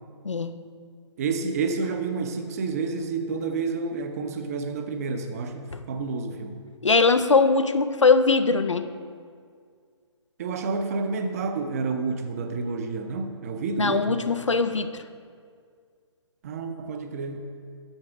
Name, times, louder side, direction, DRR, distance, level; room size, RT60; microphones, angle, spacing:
voice 1, 1.2-6.6 10.4-14.2 16.4-17.4, right 4 dB, 30° right, 6 dB, 0.6 m, -29 dB
voice 2, 6.8-8.9 13.8-14.9, left 4 dB, 80° left, 11 dB, 0.5 m, -21 dB
8.0 x 4.6 x 5.9 m, 2.1 s
figure-of-eight pair, 130°, 15 cm